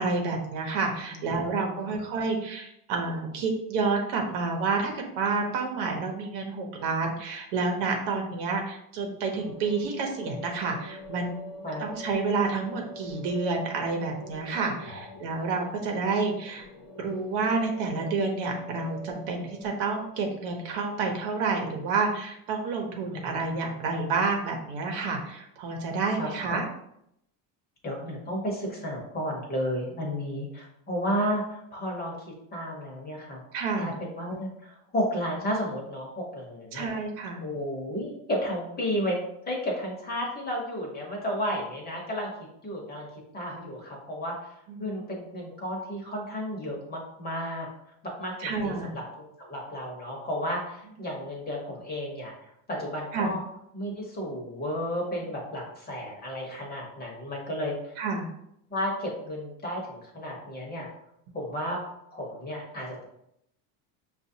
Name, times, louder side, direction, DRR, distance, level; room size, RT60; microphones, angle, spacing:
voice 1, 0.0-11.4 11.8-16.7 17.0-26.6 33.5-33.9 36.7-37.4 44.7-44.9 48.4-48.9 53.1-53.3 58.0-58.3, right 4 dB, 60° right, 2 dB, 1.0 m, -29 dB
voice 2, 1.1-2.0 11.6-11.9 14.9-15.0 23.1-23.6 26.2-26.6 27.8-32.2 32.5-33.4 33.8-36.9 37.4-39.2 39.5-42.3 42.6-43.1 43.3-47.7 48.0-53.4 53.7-58.0 58.7-60.9 61.3-61.8 62.1-63.0, equal, 20° left, -2 dB, 1.0 m, -33 dB
sound 1, 9.4-21.6, left 2 dB, 45° left, 0.8 m, -45 dB
5.8 x 2.5 x 2.7 m, 0.77 s
cardioid pair, 145°, 48 cm